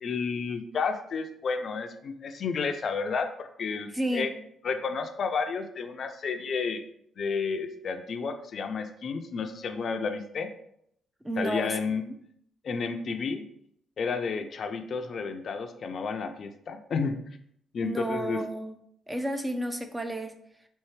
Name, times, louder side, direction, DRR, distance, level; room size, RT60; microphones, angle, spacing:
voice 1, 0.0-4.3 4.6-6.8 7.2-10.5 11.4-12.0 12.6-13.4 14.0-17.2 17.7-18.4, left 5 dB, 55° left, 7 dB, 0.5 m, -31 dB
voice 2, 3.9-4.3 11.2-12.2 17.8-18.8 19.1-20.4, right 1 dB, 15° right, 7 dB, 0.5 m, -32 dB
4.3 x 3.0 x 3.2 m, 0.71 s
cardioid pair, 90°, 0 cm